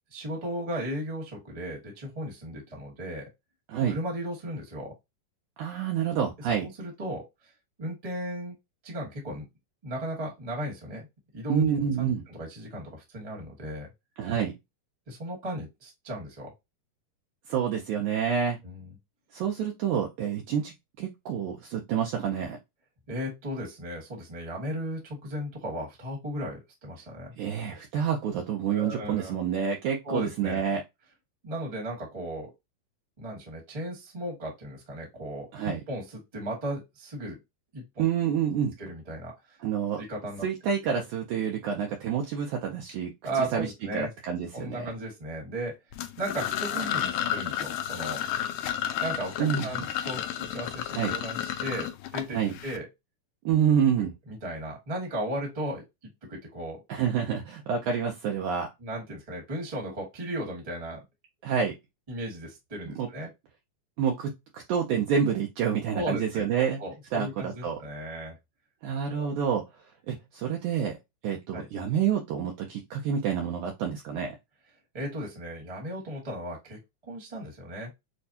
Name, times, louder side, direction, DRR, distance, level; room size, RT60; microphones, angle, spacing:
voice 1, 0.1-3.3 3.9-4.9 6.8-7.2 7.8-8.6 8.8-9.5 9.8-11.1 11.3-13.9 15.1-16.5 18.6-18.9 23.1-27.3 28.7-29.4 30.0-30.6 31.4-32.5 33.2-37.4 37.7-38.1 38.8-39.6 40.0-40.4 43.2-44.1 44.5-45.7 46.2-48.2 49.0-52.9 54.3-55.8 56.3-56.8 58.8-61.0 62.1-63.3 65.9-68.4 69.1-69.3 71.5-71.7 74.9-77.9, right 1 dB, 20° right, -1 dB, 1.0 m, -36 dB
voice 2, 5.6-6.7 11.5-12.2 14.2-14.5 17.5-18.6 19.3-22.6 27.4-30.8 35.5-35.8 38.0-38.7 39.6-40.0 40.4-43.1 43.5-44.9 49.4-49.7 50.9-51.2 52.3-52.5 53.5-54.1 56.9-58.7 61.4-61.7 63.0-63.1 64.0-66.8 67.1-67.8 68.8-69.6 70.1-71.0 71.2-74.4, right 7 dB, 75° right, 1 dB, 2.0 m, -28 dB
sound 1, 45.9-52.8, left 11 dB, 85° left, 1.6 m, -32 dB
6.5 x 2.3 x 2.7 m, 0.21 s
omnidirectional pair, 3.8 m